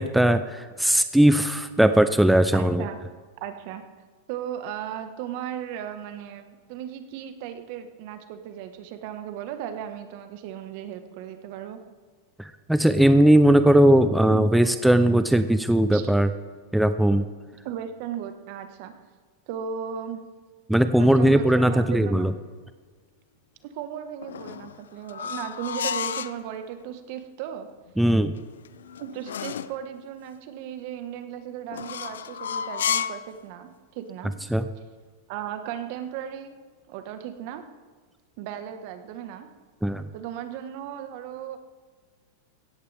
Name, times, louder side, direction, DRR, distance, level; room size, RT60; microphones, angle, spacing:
voice 1, 0.0-2.9 12.7-16.3 16.7-17.2 20.7-22.3 28.0-28.3 34.5-34.6 39.8-40.0, right 1 dB, 5° right, 10 dB, 0.6 m, -19 dB
voice 2, 2.5-3.0 3.4-3.8 4.3-11.8 14.3-14.5 15.9-16.1 17.6-18.9 19.5-20.2 20.9-22.3 23.6-27.7 29.0-34.3 35.3-36.6 36.9-37.6 38.4-39.5 40.1-41.6, right 9 dB, 55° right, 8 dB, 1.5 m, -36 dB
sound 1, 24.2-26.4 28.4-29.8 31.7-33.3, left 8 dB, 85° left, 0.6 m, -31 dB
17.0 x 14.0 x 3.5 m, 1.5 s
hypercardioid pair, 115°, 0 cm